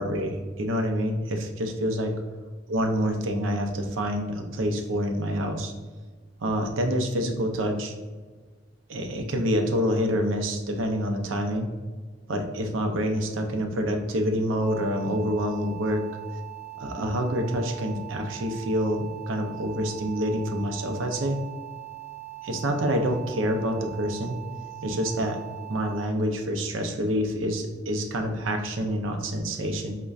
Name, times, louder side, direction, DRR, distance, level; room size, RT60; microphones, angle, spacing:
voice 1, 0.0-2.1 2.7-5.7 6.4-7.9 8.9-11.7 12.3-16.1 16.8-21.4 22.4-24.4 24.8-25.4 25.7-30.0, equal, 85° right, 4 dB, 0.5 m, -27 dB
sound 1, 14.6-26.0, right 20 dB, 40° right, 1.0 m, -41 dB
5.0 x 2.2 x 2.3 m, 1.4 s
head